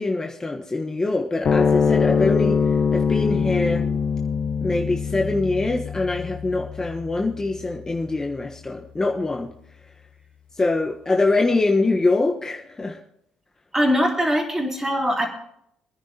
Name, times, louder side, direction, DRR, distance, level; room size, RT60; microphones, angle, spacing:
voice 1, 0.0-3.9 4.6-9.5 10.6-13.0, left 2 dB, 20° left, 2 dB, 1.2 m, -24 dB
sound 1, 1.4-8.1, left 6 dB, 45° left, 1.0 m, -23 dB
voice 2, 13.7-15.3, equal, 15° right, 0 dB, 3.6 m, -21 dB
25.5 x 10.5 x 2.9 m, 0.73 s
hypercardioid pair, 55°, 3 cm